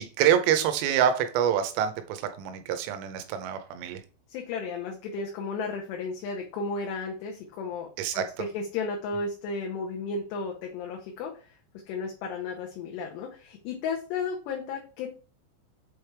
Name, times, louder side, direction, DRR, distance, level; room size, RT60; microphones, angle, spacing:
voice 1, 0.0-4.0 8.0-8.2, right 9 dB, 85° right, 8 dB, 3.4 m, -26 dB
voice 2, 4.3-11.5 11.9-15.3, left 4 dB, 75° left, 0 dB, 2.6 m, -34 dB
7.8 x 3.4 x 4.6 m, 0.37 s
omnidirectional pair, 5.8 m